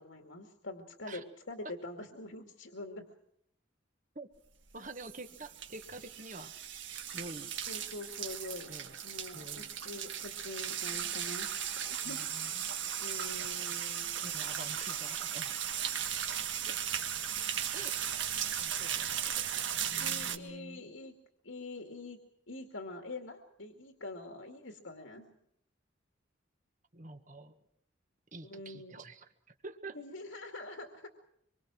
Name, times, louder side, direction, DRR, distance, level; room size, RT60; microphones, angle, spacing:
voice 1, 0.0-3.0 7.7-8.7 9.0-11.5 11.8-12.2 13.0-14.1 20.0-21.2 21.4-22.2 22.5-25.4 28.4-28.9 29.9-31.1, left 2 dB, 75° left, 3 dB, 2.3 m, -45 dB
voice 2, 4.7-6.5 7.1-7.5 8.7-9.0 9.3-9.7 12.0-12.6 13.6-16.0 17.7-18.3 18.6-19.5 19.8-20.9 26.9-27.6 28.3-30.0, right 2 dB, 40° right, 8 dB, 1.5 m, -48 dB
sound 1, 4.7-20.4, right 9 dB, 65° right, 1.7 m, -37 dB
25.5 x 24.0 x 6.2 m, 0.72 s
head